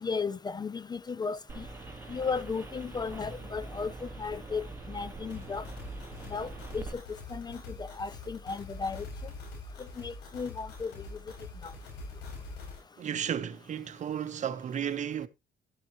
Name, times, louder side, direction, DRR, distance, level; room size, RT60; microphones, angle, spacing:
voice 1, 0.0-1.6 2.1-3.9 4.2-5.6 6.3-6.8 7.3-9.1 10.0-10.9, left 5 dB, 25° left, 0.6 m, -35 dB
sound 1, 1.5-6.9, right 3 dB, 15° right, 3.1 m, -43 dB
sound 2, 5.3-12.8, left 3 dB, 80° left, 7.1 m, -44 dB
voice 2, 13.0-15.3, right 9 dB, 45° right, 1.2 m, -33 dB
12.5 x 9.5 x 3.1 m
cardioid pair, 110°, 17 cm